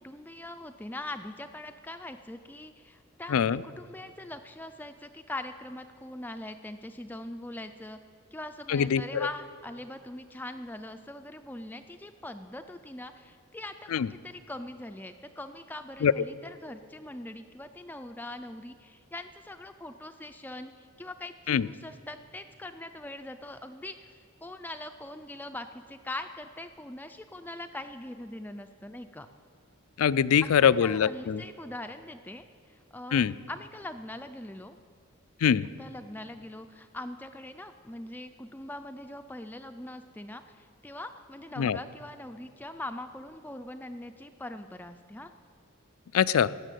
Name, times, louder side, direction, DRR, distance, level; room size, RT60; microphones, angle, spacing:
voice 1, 0.0-8.0 8.3-29.3 30.6-34.8 35.8-45.3, left 1 dB, 10° left, 8 dB, 0.3 m, -42 dB
voice 2, 3.3-3.6 8.7-9.3 13.9-14.1 16.0-16.1 21.5-21.7 30.0-31.4 33.1-33.3 35.4-35.7 41.6-41.8 46.1-46.5, left 7 dB, 75° left, 18 dB, 0.4 m, -23 dB
15.0 x 7.5 x 9.2 m, 2.3 s
head